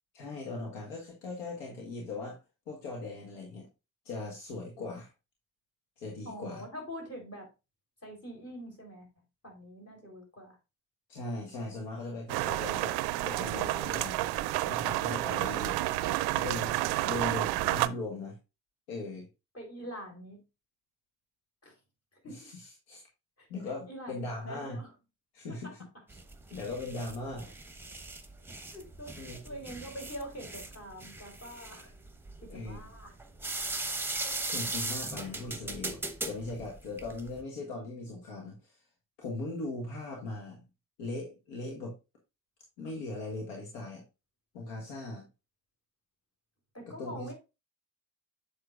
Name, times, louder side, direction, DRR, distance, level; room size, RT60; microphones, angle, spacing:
voice 1, 0.1-2.4 2.7-3.7 4.0-5.1 6.0-6.6 11.1-14.2 14.6-15.8 16.3-16.8 17.0-18.4 18.9-19.3 22.2-23.1 23.5-24.8 25.3-25.7 26.5-27.5 29.1-29.6 32.5-32.9 34.5-36.0 36.3-38.8 39.2-40.6 41.0-41.9 42.8-44.0 44.5-45.3 46.9-47.3, left 2 dB, 70° left, 0 dB, 1.5 m, -39 dB
voice 2, 6.2-7.5 8.0-9.1 9.4-10.6 19.5-20.4 21.6-21.8 22.1-22.5 23.4-23.5 23.8-24.9 25.5-25.8 27.4-27.5 28.7-29.2 29.4-31.9 32.4-33.1 46.7-47.3, equal, 30° left, 1 dB, 3.8 m, -44 dB
sound 1, 12.3-17.9, right 16 dB, 55° right, 0.5 m, -30 dB
sound 2, 26.1-37.4, right 2 dB, 5° right, 1.1 m, -39 dB
7.8 x 6.5 x 2.5 m, 0.26 s
figure-of-eight pair, 50°, 48 cm